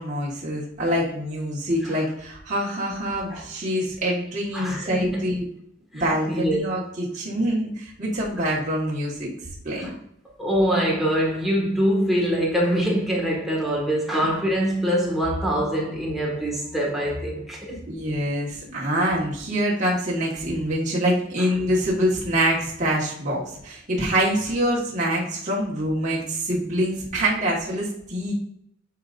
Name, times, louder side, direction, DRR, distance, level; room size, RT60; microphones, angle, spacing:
voice 1, 0.0-5.4 5.9-9.3 9.6-9.9 17.9-28.3, equal, 35° right, 1.4 m, -25 dB
voice 2, 4.5-5.3 5.9-6.6 9.8-9.9 10.4-17.9, equal, ahead, 1.6 m, -24 dB
9.8 x 3.9 x 2.5 m
head